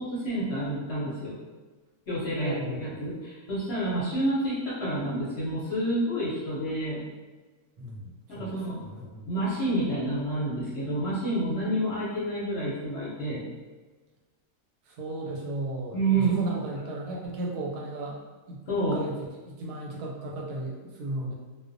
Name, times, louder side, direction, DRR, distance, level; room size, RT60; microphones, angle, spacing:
voice 1, 0.0-1.4 2.1-7.0 8.3-8.8 9.3-13.4 15.9-16.3 18.7-19.0, right 1 dB, 55° left, -8 dB, 0.7 m, -29 dB
voice 2, 2.4-3.0 7.8-9.3 14.9-18.2 18.5-18.6 18.9-19.2 19.5-21.3, right 2 dB, 90° right, -2 dB, 1.1 m, -35 dB
2.4 x 2.2 x 2.5 m, 1.3 s
omnidirectional pair, 1.6 m